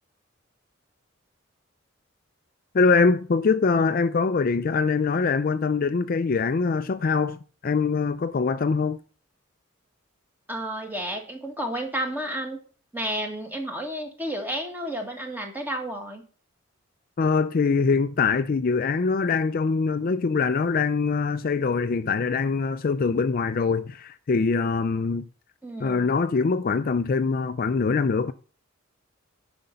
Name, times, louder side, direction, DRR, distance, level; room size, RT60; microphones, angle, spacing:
voice 1, 2.7-9.0 17.2-25.2 25.8-28.3, left 4 dB, 45° left, 0.4 m, -23 dB
voice 2, 10.5-12.6 12.9-16.2 25.6-26.1, right 1 dB, 10° right, 1.7 m, -31 dB
10.5 x 5.1 x 5.6 m
head